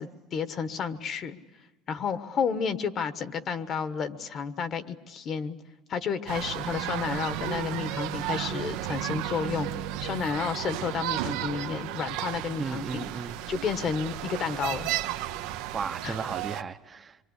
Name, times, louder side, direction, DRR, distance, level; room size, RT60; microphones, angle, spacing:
voice 1, 0.0-1.4 1.9-5.6 5.9-9.7 10.0-13.1 13.5-14.9 16.0-16.1, left 6 dB, 45° left, 1.4 m, -31 dB
sound 1, 6.3-16.6, right 13 dB, 85° right, 1.0 m, -33 dB
voice 2, 12.6-13.4 15.7-17.2, right 5 dB, 25° right, 0.8 m, -35 dB
26.5 x 24.0 x 8.2 m
cardioid pair, 125°, 0 cm